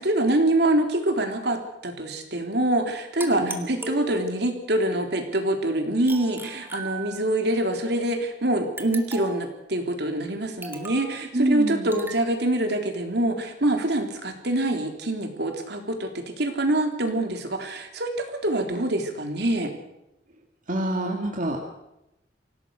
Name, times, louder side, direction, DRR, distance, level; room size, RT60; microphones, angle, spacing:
voice 1, 0.0-19.7, right 1 dB, 65° right, 4 dB, 3.6 m, -25 dB
sound 1, 3.2-4.6 6.1-7.5 8.8-9.5 10.6-11.1 11.9-12.3, right 2 dB, 15° right, 2.2 m, -38 dB
voice 2, 11.3-11.9 20.7-21.6, right 1 dB, 50° right, 1 dB, 2.4 m, -26 dB
25.5 x 17.0 x 6.5 m, 0.88 s
head